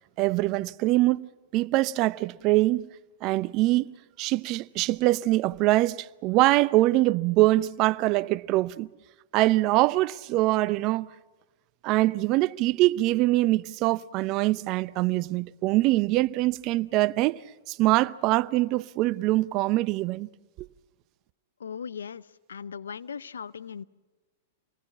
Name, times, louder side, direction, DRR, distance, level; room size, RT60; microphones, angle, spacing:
voice 1, 0.2-1.3 1.5-2.8 3.2-3.9 4.2-8.9 9.3-11.1 11.8-17.4 17.7-20.3 20.6-20.7, right 18 dB, 45° right, 0.7 m, -23 dB
voice 2, 21.6-22.2 22.5-23.8, left 7 dB, 80° left, 0.7 m, -38 dB
27.0 x 20.0 x 7.2 m
hypercardioid pair, 105°, 0 cm